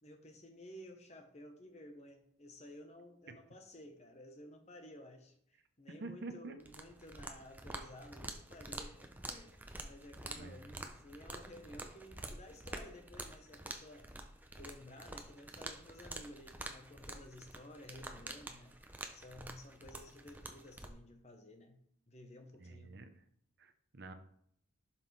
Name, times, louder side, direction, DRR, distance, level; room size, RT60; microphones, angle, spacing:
voice 1, 0.0-14.1 14.5-18.8 19.1-21.8 22.1-23.0, left 1 dB, 30° left, 1.0 m, -54 dB
voice 2, 6.0-6.5 10.3-10.8 22.6-23.2 23.6-24.1, right 3 dB, 50° right, 0.7 m, -48 dB
sound 1, 6.6-20.9, right 2 dB, 10° right, 0.6 m, -48 dB
11.5 x 5.8 x 3.2 m
head